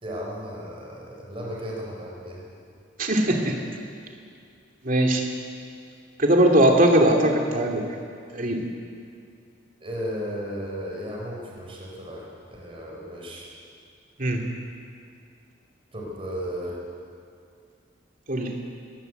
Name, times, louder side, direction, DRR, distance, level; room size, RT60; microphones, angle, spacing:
voice 1, 0.0-2.4 9.8-13.5 15.9-16.7, equal, 30° right, -3 dB, 4.9 m, -35 dB
voice 2, 3.0-3.5 4.8-5.3 6.2-7.9 8.3-8.6 14.2-14.4 18.3-18.5, right 1 dB, 45° right, 1 dB, 2.8 m, -20 dB
21.5 x 18.5 x 8.2 m, 2.3 s
head